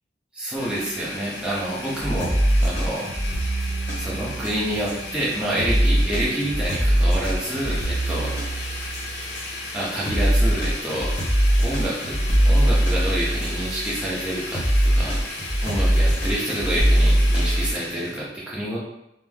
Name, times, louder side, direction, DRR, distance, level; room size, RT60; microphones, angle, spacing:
voice 1, 0.3-3.1 4.0-8.3 9.7-11.1 11.6-15.2 15.6-18.8, right 1 dB, 5° right, -7 dB, 0.7 m, -28 dB
Domestic sounds home sounds, 0.6-18.2, left 2 dB, 70° left, 0.7 m, -35 dB
sound 1, 2.0-14.0 14.5-17.7, right 1 dB, 30° left, 1.0 m, -22 dB
3.1 x 2.0 x 3.4 m, 0.82 s
head